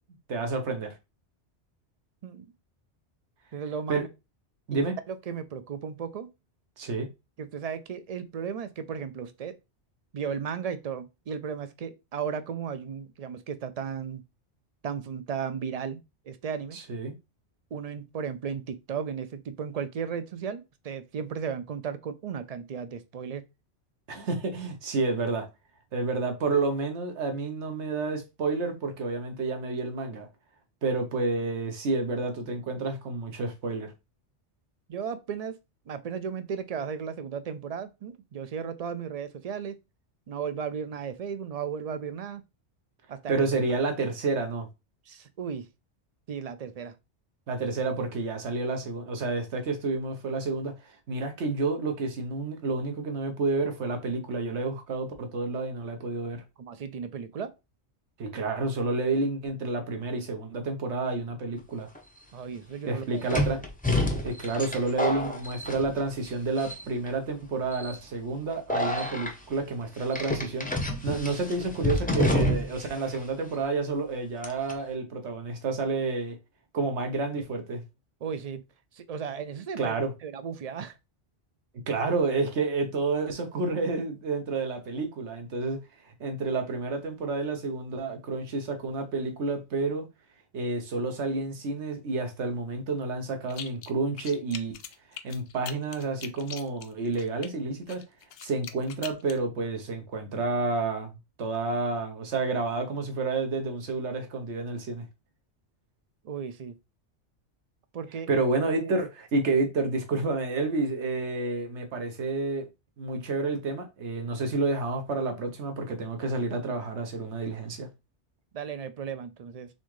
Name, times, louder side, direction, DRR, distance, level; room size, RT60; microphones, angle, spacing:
voice 1, 0.3-0.9 3.9-4.0 4.7-4.9 6.8-7.1 16.7-17.1 24.1-25.5 25.9-30.3 30.8-33.9 43.3-44.7 47.5-56.4 58.2-61.9 62.9-63.6 64.2-76.4 76.7-77.8 79.8-80.1 81.9-85.8 86.0-90.1 90.5-94.8 95.2-98.0 98.4-101.1 101.4-105.0 108.3-112.7 113.0-117.9, right 3 dB, 75° right, 1.3 m, -30 dB
voice 2, 3.5-4.1 4.7-4.8 5.1-6.3 7.4-9.5 10.1-14.2 14.8-16.0 16.3-16.8 17.7-23.4 34.9-35.6 35.9-39.8 40.3-42.4 43.1-43.3 45.1-45.7 46.3-46.9 56.6-57.5 62.3-63.5 78.2-78.6 78.9-79.9 80.2-81.0 106.2-106.7 107.9-108.3 118.5-119.7, right 7 dB, 60° right, 0.4 m, -35 dB
sound 1, 62.0-62.1 63.3-66.3 66.6-67.1 67.7-68.0 68.7-69.3 70.1-72.9 73.1-73.2 74.4-74.7, left 1 dB, 10° left, 0.5 m, -28 dB
sound 2, 93.5-93.9 94.2-97.5 97.9-99.4, left 8 dB, 65° left, 0.7 m, -42 dB
4.2 x 3.5 x 3.1 m
omnidirectional pair, 1.2 m